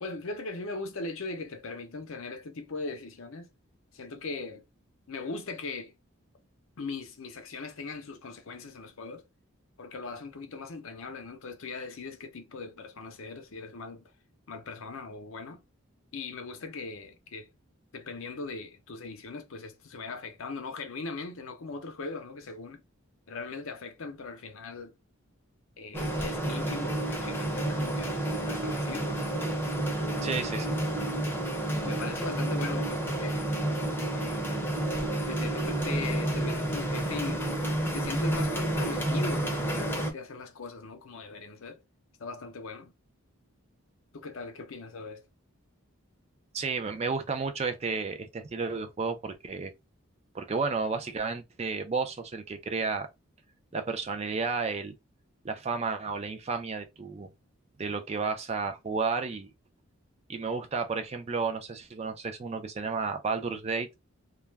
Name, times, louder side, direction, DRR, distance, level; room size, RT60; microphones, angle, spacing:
voice 1, 0.0-3.5 3.9-4.6 5.1-5.9 6.8-9.2 9.8-14.1 14.5-15.6 16.1-17.5 17.9-22.8 23.3-25.0 25.8-28.2 28.5-29.2 30.3-30.7 31.8-33.5 34.1-34.5 35.3-37.5 37.9-41.8 42.2-42.9 44.1-45.2, left 3 dB, 70° left, 0.6 m, -39 dB
sound 1, 25.9-40.1, right 1 dB, 10° left, 0.7 m, -30 dB
voice 2, 30.2-30.8 46.5-49.7 50.3-53.1 53.7-54.9 55.4-57.3 57.8-59.5 60.3-63.9, right 4 dB, 30° right, 0.4 m, -32 dB
2.3 x 2.1 x 3.2 m
head